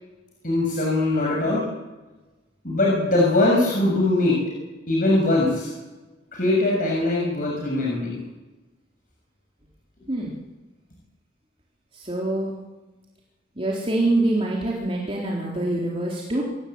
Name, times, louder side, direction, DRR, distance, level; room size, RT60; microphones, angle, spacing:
voice 1, 0.4-1.6 2.6-4.4 4.9-5.7 6.3-8.2, left 2 dB, 45° left, -3 dB, 7.1 m, -21 dB
voice 2, 11.9-12.6 13.6-16.4, right 2 dB, 30° right, -4 dB, 4.0 m, -25 dB
25.5 x 17.5 x 8.9 m, 1.1 s
head